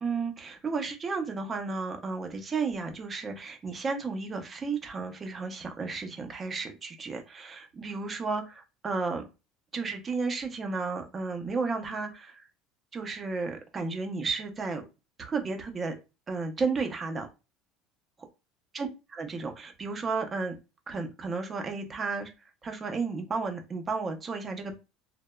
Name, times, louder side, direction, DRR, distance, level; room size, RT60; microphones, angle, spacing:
voice 1, 0.0-9.2 9.7-12.5 12.9-14.8 15.2-15.9 16.3-17.3 18.7-20.6 20.9-22.3 22.6-24.8, right 4 dB, 25° right, 5 dB, 0.5 m, -33 dB
2.7 x 2.0 x 2.2 m, 0.28 s
cardioid pair, 135°, 0 cm